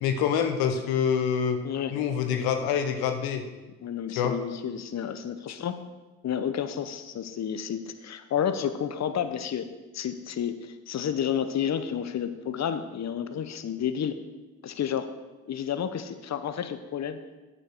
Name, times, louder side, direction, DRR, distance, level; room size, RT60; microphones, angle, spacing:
voice 1, 0.0-1.6 1.9-3.4 4.2-4.3, left 7 dB, 85° left, 7 dB, 0.8 m, -26 dB
voice 2, 3.8-5.8 6.2-9.7 9.9-14.2 14.6-15.1 15.5-17.2, left 8 dB, 50° left, 10 dB, 0.8 m, -31 dB
8.4 x 5.2 x 6.6 m, 1.2 s
supercardioid pair, 50°, 35 cm